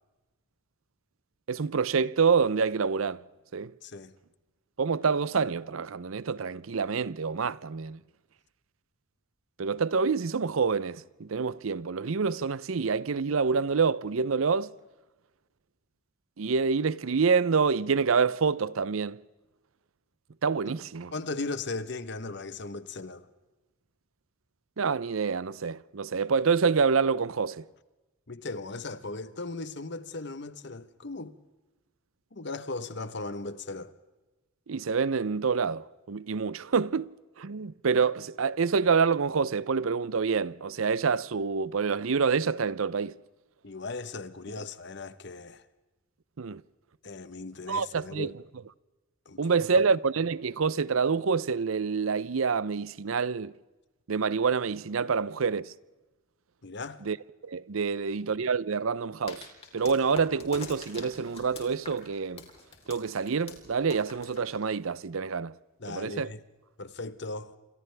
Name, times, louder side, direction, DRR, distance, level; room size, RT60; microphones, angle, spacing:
voice 1, 1.5-3.2 3.5-3.7 4.8-8.0 9.6-14.7 16.4-19.2 20.4-21.1 24.8-27.6 34.7-37.1 37.4-43.2 46.4-46.6 47.7-48.3 49.4-53.5 54.1-55.7 57.0-57.2 57.4-59.5 59.7-62.4 62.9-65.6 65.9-66.3, right 5 dB, 85° right, 0.6 m, -27 dB
voice 2, 3.8-4.1 20.7-20.8 21.1-23.3 28.3-31.4 32.3-33.9 43.6-45.6 47.0-48.3 49.3-49.4 49.7-49.9 56.6-57.0 65.8-66.4 66.8-67.6, left 3 dB, 55° left, 1.1 m, -37 dB
sound 1, 59.3-65.0, left 3 dB, 30° left, 3.7 m, -45 dB
29.0 x 26.5 x 3.4 m
head